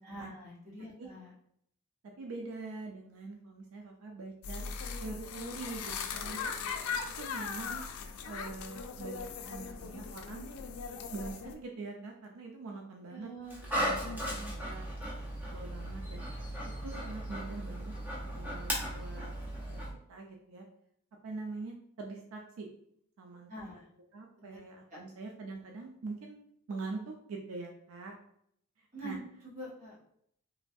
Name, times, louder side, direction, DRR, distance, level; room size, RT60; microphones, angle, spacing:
voice 1, 0.0-1.3 13.1-13.6 13.9-14.6 23.5-23.9 24.4-24.6 24.9-25.1 28.9-30.1, right 1 dB, 35° right, -5 dB, 1.2 m, -46 dB
voice 2, 2.2-4.7 5.0-6.7 7.2-7.9 8.2-10.5 11.1-13.3 13.7-14.9 15.5-16.2 16.8-17.9 18.2-19.3 19.7-19.8 20.1-20.7 21.2-22.7 23.2-23.7 24.1-26.4 26.7-28.2 29.0-29.2, right 3 dB, 80° right, 1 dB, 0.4 m, -44 dB
sound 1, 4.4-11.5, left 5 dB, 90° left, 0.3 m, -39 dB
Dog, 13.5-19.9, equal, 10° right, 0.6 m, -37 dB
3.2 x 2.2 x 2.5 m, 0.70 s
head